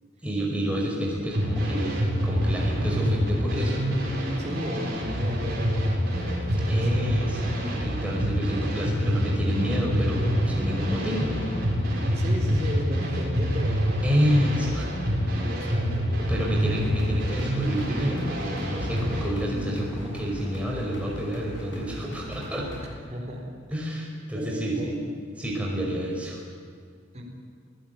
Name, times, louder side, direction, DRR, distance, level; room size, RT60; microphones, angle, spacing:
voice 1, 0.2-3.8 6.7-11.4 14.0-14.9 16.2-22.7 23.7-24.9 25.4-26.4, equal, 5° right, -2 dB, 5.3 m, -29 dB
sound 1, 1.3-19.2, equal, 55° right, 7.2 m, -26 dB
voice 2, 4.4-7.0 12.1-14.0 15.1-16.1 16.4-16.6 23.1-23.5 24.3-24.9 27.1-27.2, equal, 35° right, 0 dB, 4.1 m, -35 dB
sound 2, 16.6-22.9, left 1 dB, 70° left, 7.6 m, -41 dB
26.5 x 16.5 x 9.5 m, 2.1 s
head